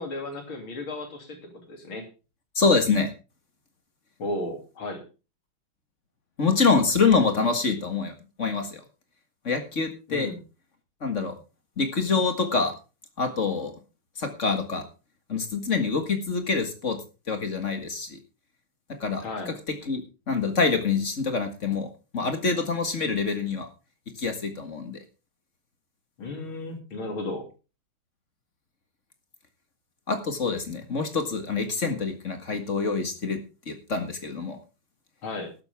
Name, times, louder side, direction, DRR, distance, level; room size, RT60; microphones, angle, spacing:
voice 1, 0.0-2.1 4.2-5.1 10.1-10.4 19.2-19.6 26.2-27.5 35.2-35.5, left 2 dB, 75° left, 4 dB, 3.8 m, -34 dB
voice 2, 2.6-3.1 6.4-8.8 9.4-10.3 11.0-11.4 11.8-12.7 13.2-13.7 14.2-14.9 15.3-17.0 17.3-18.2 19.0-19.5 19.9-23.7 24.2-25.0 30.1-33.4 33.7-34.6, left 4 dB, 35° left, 6 dB, 1.9 m, -26 dB
14.0 x 12.5 x 3.6 m, 0.32 s
omnidirectional pair, 2.3 m